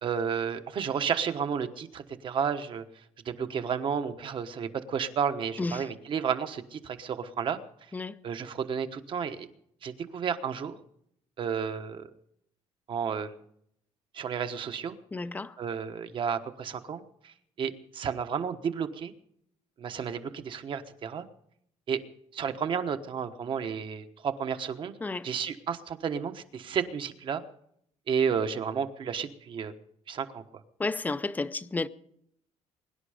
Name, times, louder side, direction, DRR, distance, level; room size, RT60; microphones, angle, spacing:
voice 1, 0.0-2.9 3.2-7.6 8.2-9.5 9.8-10.8 11.4-12.1 12.9-13.4 14.1-14.9 15.6-19.1 19.8-21.3 21.9-22.0 22.3-25.0 25.2-27.4 28.1-29.7 30.1-30.4, right 7 dB, 45° right, 1.2 m, -32 dB
voice 2, 5.6-5.9 7.9-8.2 15.1-15.6 25.0-25.3 30.8-31.9, left 3 dB, 15° left, 0.6 m, -32 dB
23.5 x 11.0 x 5.1 m
cardioid pair, 150°, 12 cm